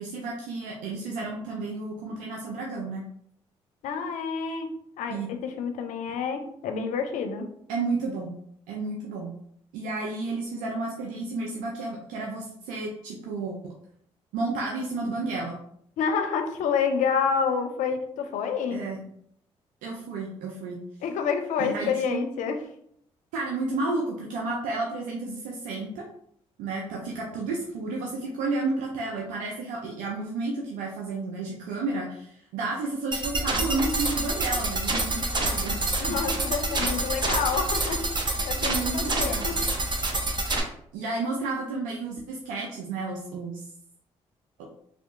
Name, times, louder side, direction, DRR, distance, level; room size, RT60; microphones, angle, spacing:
voice 1, 0.0-3.0 5.1-5.3 7.7-8.4 8.7-9.4 9.7-13.7 14.3-15.6 18.7-19.0 19.8-20.8 21.6-22.2 23.3-26.0 26.6-35.8 36.1-36.2 38.4-39.5 40.4-43.7 44.6-44.7, right 3 dB, 85° right, -1 dB, 0.5 m, -32 dB
voice 2, 3.8-4.7 5.0-7.5 16.0-18.8 21.0-22.6 36.0-38.1 38.4-39.6, left 6 dB, 75° left, 6 dB, 0.5 m, -28 dB
sound 1, 33.1-40.6, right 2 dB, 35° right, 0.8 m, -27 dB
3.4 x 2.7 x 2.5 m, 0.69 s
supercardioid pair, 50°, 13 cm